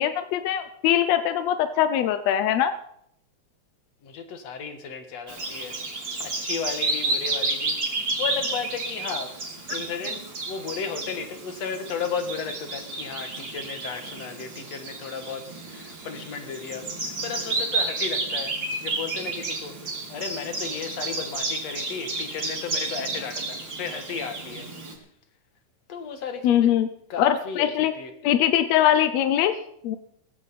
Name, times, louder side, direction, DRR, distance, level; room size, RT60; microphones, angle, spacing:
voice 1, 0.0-2.7 9.7-9.8 26.4-26.9 27.2-27.9 28.2-29.5 29.8-30.0, left 11 dB, 75° left, 10 dB, 1.7 m, -22 dB
voice 2, 4.0-5.7 6.2-7.8 8.2-9.3 9.7-18.5 18.8-19.8 20.1-24.7 25.9-26.7 27.1-28.1, left 6 dB, 60° left, 7 dB, 2.6 m, -34 dB
Bird vocalization bird call bird song, 5.3-24.9, right 3 dB, 35° right, 3.9 m, -31 dB
18.5 x 15.5 x 4.3 m, 0.72 s
omnidirectional pair, 3.7 m